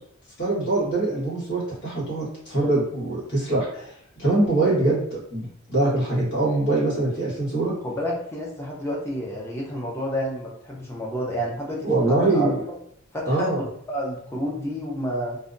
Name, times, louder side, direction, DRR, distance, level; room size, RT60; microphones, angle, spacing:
voice 1, 0.4-7.7 11.8-12.6 13.2-13.6, right 2 dB, 55° left, -8 dB, 1.3 m, -23 dB
voice 2, 7.8-12.5 13.1-15.4, equal, 15° left, -3 dB, 0.5 m, -30 dB
2.6 x 2.1 x 2.5 m, 0.69 s
head